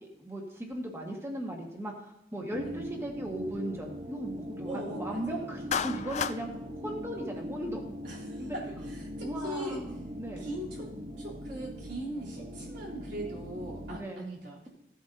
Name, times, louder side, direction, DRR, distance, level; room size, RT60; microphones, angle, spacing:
voice 1, 0.2-6.5 6.8-7.8 8.4-8.5 9.2-10.5 13.9-14.3, right 1 dB, 15° right, 0 dB, 1.4 m, -37 dB
sound 1, 2.5-14.0, equal, 35° right, 1.0 m, -40 dB
voice 2, 4.6-5.5 8.0-9.8 10.4-14.7, right 1 dB, 85° right, -5 dB, 3.2 m, -41 dB
Clapping, 5.7-6.4, left 7 dB, 40° left, 0.3 m, -31 dB
15.0 x 8.1 x 2.7 m, 0.82 s
head